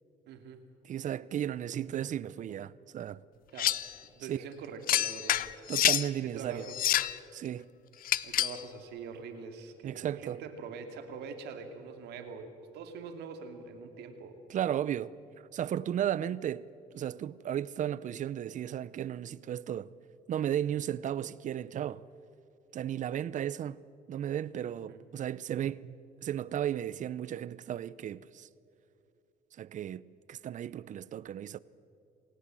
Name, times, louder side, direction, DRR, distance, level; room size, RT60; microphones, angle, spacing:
voice 1, 0.3-0.6 3.5-3.8 4.1-5.4 6.2-7.2 8.2-14.4 24.9-25.0, right 5 dB, 80° right, 2.5 m, -44 dB
voice 2, 0.8-3.2 4.2-4.4 5.7-6.7 7.3-7.7 9.8-10.4 14.5-15.1 15.5-16.7 16.9-19.9 20.3-22.1 22.7-23.8 24.1-26.0 26.2-28.5 29.6-30.0 30.3-31.6, right 10 dB, 50° right, 0.6 m, -34 dB
sound 1, 3.6-3.9 4.9-6.1 6.7-7.2 8.0-8.6, left 12 dB, 55° left, 0.7 m, -28 dB
27.5 x 18.0 x 7.6 m
cardioid pair, 110°, 17 cm